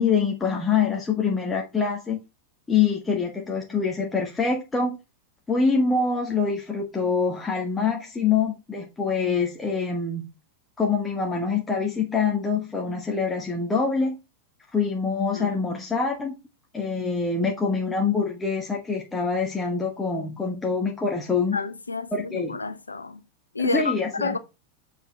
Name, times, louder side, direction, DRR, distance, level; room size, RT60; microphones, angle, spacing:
voice 1, 0.0-2.2 2.7-5.0 5.5-10.2 10.8-14.2 14.7-16.3 16.7-21.6 22.1-22.6 23.6-24.4, left 5 dB, 15° left, 1.6 m, -25 dB
voice 2, 21.5-23.2 23.5-24.4, left 3 dB, 80° left, 0.9 m, -29 dB
7.1 x 6.6 x 3.3 m
figure-of-eight pair, 90°, 0 cm